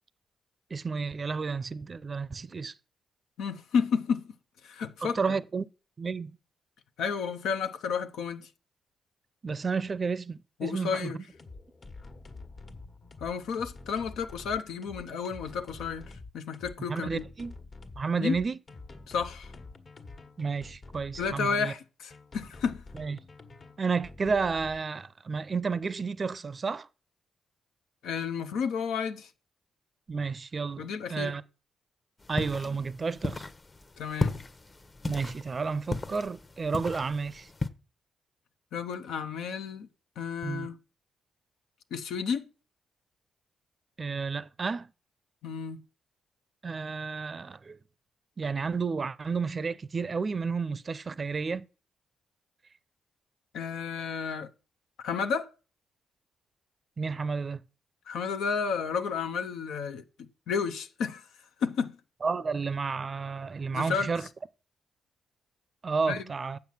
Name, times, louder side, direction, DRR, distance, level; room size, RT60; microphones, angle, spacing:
voice 1, 0.7-2.7 5.0-5.7 6.0-6.3 9.4-11.1 16.9-17.5 18.0-18.6 20.4-21.7 22.9-23.2 23.8-26.9 30.1-31.4 32.3-33.5 35.0-37.5 40.4-40.7 44.0-44.9 46.6-47.8 48.4-51.7 57.0-57.6 62.2-64.3 65.8-66.6, right 5 dB, 40° right, 0.5 m, -31 dB
voice 2, 3.4-4.3 4.6-5.2 7.0-8.5 10.6-11.2 13.2-17.2 18.2-18.4 19.1-19.5 21.2-22.8 28.0-29.3 30.8-31.3 34.0-34.4 38.7-39.9 40.2-40.8 41.9-42.5 45.4-45.8 53.5-54.5 55.0-55.5 58.1-61.3 61.6-62.0 63.7-64.1 66.1-66.2, left 6 dB, 85° left, 0.6 m, -32 dB
sound 1, 11.3-21.4 22.1-24.8, left 3 dB, 50° left, 1.4 m, -47 dB
sound 2, 32.2-37.7, left 3 dB, 35° left, 0.9 m, -35 dB
7.5 x 5.8 x 7.3 m
cardioid pair, 65°, 0 cm